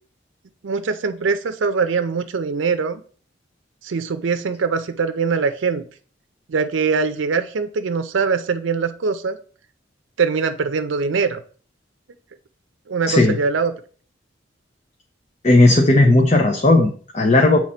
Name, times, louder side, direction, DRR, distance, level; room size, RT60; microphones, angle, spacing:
voice 1, 0.6-3.0 3.8-5.8 6.5-9.4 10.2-11.4 12.9-13.7, right 5 dB, 90° right, 10 dB, 0.5 m, -22 dB
voice 2, 13.1-13.4 15.4-17.6, left 2 dB, 35° left, 2 dB, 0.7 m, -15 dB
7.3 x 3.1 x 4.3 m, 0.43 s
head